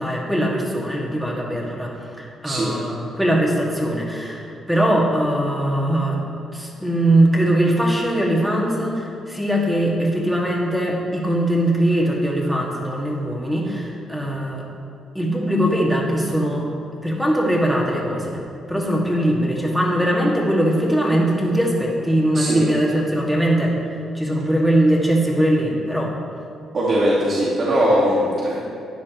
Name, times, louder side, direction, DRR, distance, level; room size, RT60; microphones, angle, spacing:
voice 1, 0.0-6.2 6.5-14.6 15.1-16.7 17.0-18.4 18.7-23.7 24.1-26.1, right 1 dB, 5° right, -2 dB, 2.1 m, -21 dB
voice 2, 2.4-2.8 22.3-22.7 26.7-28.6, equal, 45° right, -6 dB, 2.0 m, -20 dB
13.0 x 9.7 x 3.1 m, 2.5 s
cardioid pair, 90°, 0 cm